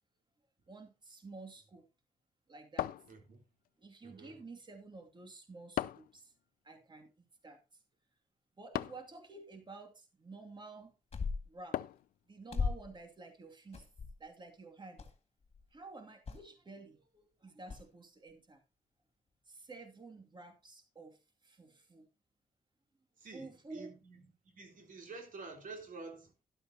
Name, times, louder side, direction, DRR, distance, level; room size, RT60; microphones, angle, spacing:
voice 1, 0.7-1.8 2.5-2.9 3.8-6.3 6.6-7.1 7.4-7.6 8.6-10.9 11.5-11.8 12.3-13.9 14.2-15.1 15.7-18.6 19.5-22.1 23.3-23.9, right 3 dB, 30° right, 2.6 m, -51 dB
sound 1, 2.8-3.7 5.8-6.2 8.7-9.2 11.7-12.2, left 13 dB, 85° left, 0.4 m, -38 dB
voice 2, 3.1-3.4 4.0-4.4 23.2-26.3, right 3 dB, 65° right, 3.7 m, -49 dB
sound 2, 11.1-11.6 12.5-13.0 13.7-14.3 15.0-15.1 15.4-15.7 16.3-16.4 17.7-17.8, left 4 dB, 45° left, 2.1 m, -37 dB
12.0 x 11.5 x 2.9 m
cardioid pair, 70°, 15 cm